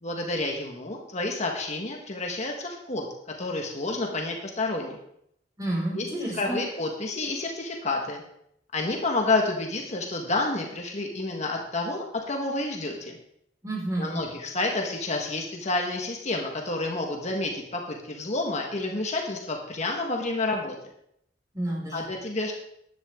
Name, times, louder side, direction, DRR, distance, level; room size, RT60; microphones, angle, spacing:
voice 1, 0.0-3.1 3.4-5.0 5.9-6.1 6.4-8.2 8.7-13.2 14.0-20.7 21.9-22.5, left 2 dB, 40° left, 1 dB, 1.5 m, -29 dB
voice 2, 5.6-6.6 13.6-14.2 21.5-22.0, right 1 dB, 20° right, -3 dB, 4.8 m, -30 dB
14.5 x 10.5 x 3.7 m, 0.74 s
head